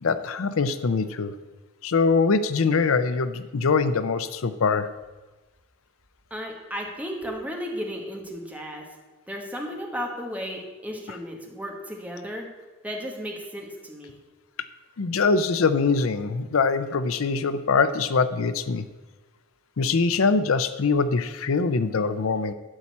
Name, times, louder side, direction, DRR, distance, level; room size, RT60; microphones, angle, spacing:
voice 1, 0.0-1.3 1.8-4.9 15.0-18.9 19.8-22.5, left 4 dB, 80° left, 12 dB, 0.6 m, -23 dB
voice 2, 6.3-8.8 9.3-12.5 12.8-14.1, equal, 5° right, 1 dB, 1.5 m, -34 dB
12.5 x 4.3 x 8.3 m, 1.2 s
head